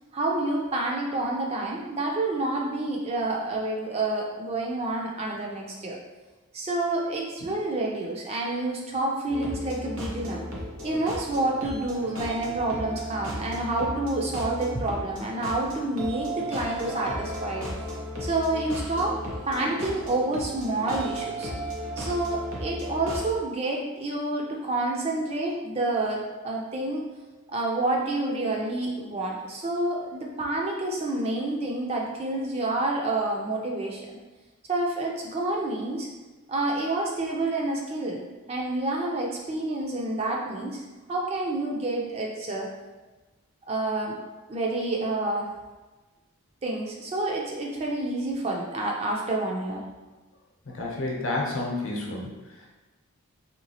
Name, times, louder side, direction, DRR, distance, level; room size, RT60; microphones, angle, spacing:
voice 1, 0.1-6.0 6.5-10.4 10.8-17.7 18.2-19.1 19.5-21.5 22.0-27.0 27.5-34.2 34.7-36.1 36.5-40.8 41.1-42.7 43.7-44.2 44.5-45.5 46.6-49.8, right 2 dB, 25° right, -1 dB, 0.3 m, -28 dB
sound 1, 9.3-23.3, equal, 75° right, 0.8 m, -35 dB
voice 2, 50.7-52.3, left 2 dB, 60° left, -2 dB, 0.7 m, -30 dB
3.1 x 2.9 x 2.7 m, 1.2 s
head